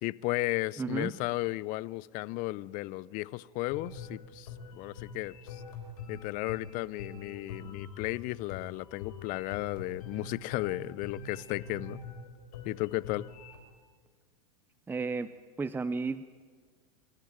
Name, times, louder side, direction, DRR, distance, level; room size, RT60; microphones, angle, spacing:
voice 1, 0.0-5.6 6.1-12.0 12.6-13.3, left 19 dB, 45° left, 21 dB, 0.6 m, -34 dB
voice 2, 0.8-1.1 14.9-15.3 15.6-16.3, right 4 dB, 10° right, 14 dB, 0.6 m, -33 dB
sound 1, 3.7-13.6, left 4 dB, 70° left, 4.3 m, -44 dB
25.0 x 13.5 x 9.1 m, 1.5 s
hypercardioid pair, 100°, 20 cm